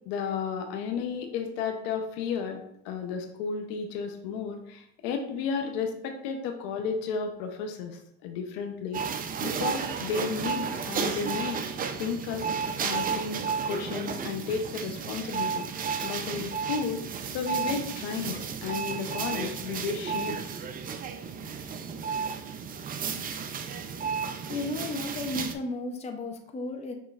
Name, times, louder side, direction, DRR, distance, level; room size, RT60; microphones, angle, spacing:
voice 1, 0.1-9.0 9.4-11.6 12.0-20.4, left 6 dB, 80° left, 5 dB, 0.7 m, -33 dB
sound 1, 8.9-25.5, right 6 dB, 30° right, 0.4 m, -33 dB
voice 2, 24.5-26.9, left 2 dB, 20° left, 4 dB, 0.6 m, -34 dB
6.1 x 3.1 x 2.4 m, 0.73 s
supercardioid pair, 100°, 30 cm